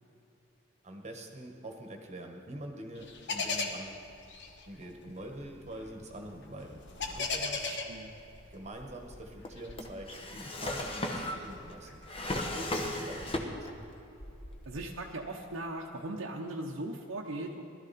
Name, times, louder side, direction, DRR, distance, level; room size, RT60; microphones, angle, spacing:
voice 1, 0.8-4.0 4.7-6.8 7.2-7.7 8.5-12.0 12.5-13.5, right 1 dB, 35° right, 3 dB, 1.3 m, -44 dB
sound 1, 3.0-9.0 9.5-12.1, left 4 dB, 60° left, 1.3 m, -38 dB
voice 2, 7.6-8.1 12.8-12.9 14.7-17.6, right 2 dB, 75° right, -2 dB, 0.9 m, -39 dB
Drawer open or close, 8.6-13.8 14.1-15.0, left 1 dB, 30° left, 1.2 m, -37 dB
18.5 x 12.5 x 4.2 m, 2.9 s
head